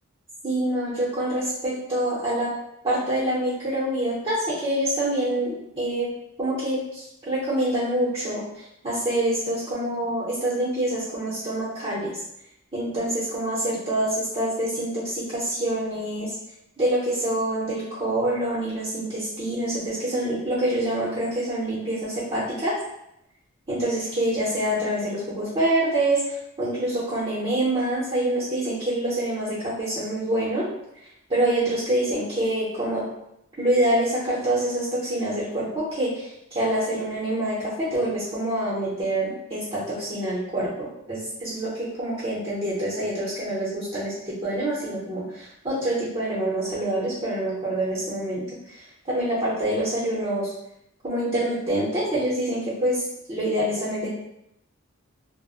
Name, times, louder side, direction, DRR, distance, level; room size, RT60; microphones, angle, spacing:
voice 1, 0.4-2.5 2.8-6.1 6.4-12.1 12.7-16.3 16.8-22.7 23.7-30.6 31.3-33.0 33.6-50.5 51.0-54.1, right 1 dB, 25° right, -9 dB, 0.6 m, -26 dB
2.0 x 2.0 x 3.5 m, 0.82 s
head